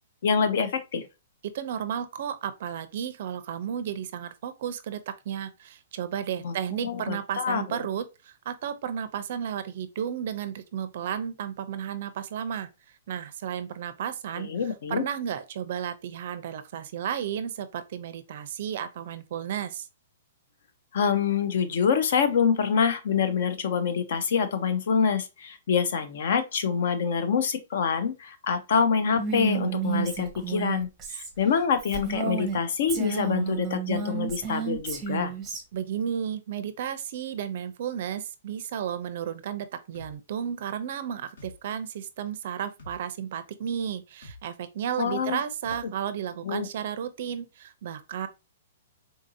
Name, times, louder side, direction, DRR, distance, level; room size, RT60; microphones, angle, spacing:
voice 1, 0.2-1.1 6.4-6.5 6.8-7.8 14.4-15.0 20.9-35.3 45.0-45.4 46.4-46.7, left 6 dB, 50° left, 0.5 m, -26 dB
voice 2, 1.4-12.7 13.1-14.5 14.9-19.9 35.7-48.3, right 9 dB, 45° right, 0.4 m, -33 dB
Female speech woman speaking, 29.1-32.6 32.9-35.6, right 6 dB, 10° right, 0.7 m, -31 dB
sound 1, 39.9-40.1 41.4-41.6 42.8-43.0 44.2-44.4 45.6-45.8, left 1 dB, 80° left, 1.5 m, -45 dB
3.8 x 2.6 x 2.5 m
hypercardioid pair, 170°, 0 cm